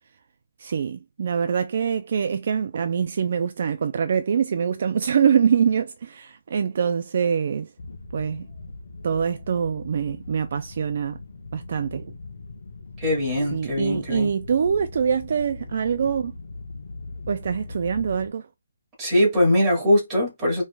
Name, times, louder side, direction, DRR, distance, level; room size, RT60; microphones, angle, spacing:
voice 1, 0.6-7.7 8.1-8.4 9.0-11.2 11.5-12.1 13.5-16.3 17.3-18.4, right 7 dB, 50° right, 0.3 m, -24 dB
sound 1, 7.8-18.3, left 3 dB, 60° left, 1.0 m, -40 dB
voice 2, 13.0-14.3 19.0-20.6, left 1 dB, 15° right, 2.0 m, -21 dB
4.7 x 3.2 x 2.2 m
hypercardioid pair, 165°, 0 cm